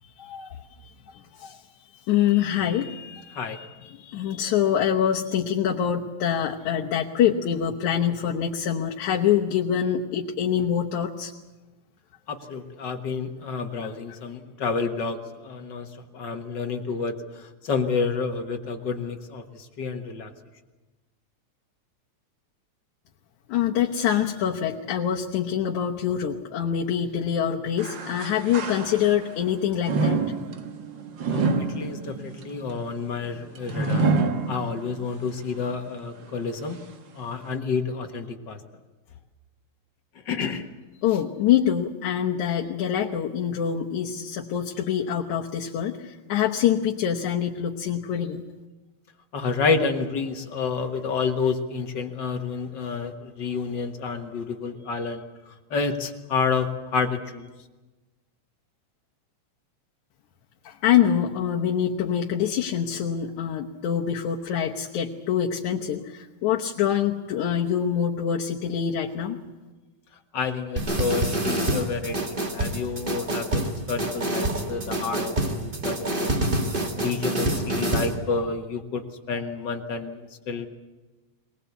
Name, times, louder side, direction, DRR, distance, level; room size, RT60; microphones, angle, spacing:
voice 1, 0.2-0.6 1.4-1.6 2.1-11.3 23.5-30.2 41.0-48.4 60.6-69.4, left 9 dB, 80° left, -2 dB, 2.5 m, -25 dB
voice 2, 12.3-15.9 16.1-17.2 17.6-19.4 19.8-20.3 31.3-34.1 34.5-36.8 37.2-38.6 40.3-40.6 49.3-55.2 55.7-57.5 70.3-76.3 77.0-80.7, left 4 dB, 45° left, 5 dB, 1.8 m, -29 dB
sound 1, 27.8-29.4 29.8-35.1 35.6-35.7 36.5-36.6, right 3 dB, 50° right, 1.7 m, -27 dB
sound 2, 70.8-78.1, right 1 dB, 20° right, 1.9 m, -27 dB
22.0 x 20.0 x 8.2 m, 1.2 s
omnidirectional pair, 3.4 m